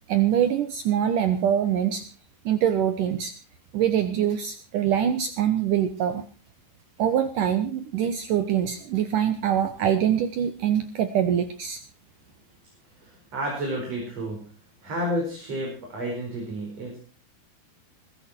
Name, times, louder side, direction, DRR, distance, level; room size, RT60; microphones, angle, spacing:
voice 1, 0.1-2.0 2.5-3.3 3.7-6.2 7.0-11.8, right 9 dB, 65° right, 9 dB, 2.4 m, -24 dB
voice 2, 13.0-14.5 14.8-17.0, equal, 40° right, 0 dB, 5.8 m, -31 dB
21.5 x 13.0 x 4.5 m, 0.37 s
omnidirectional pair, 4.5 m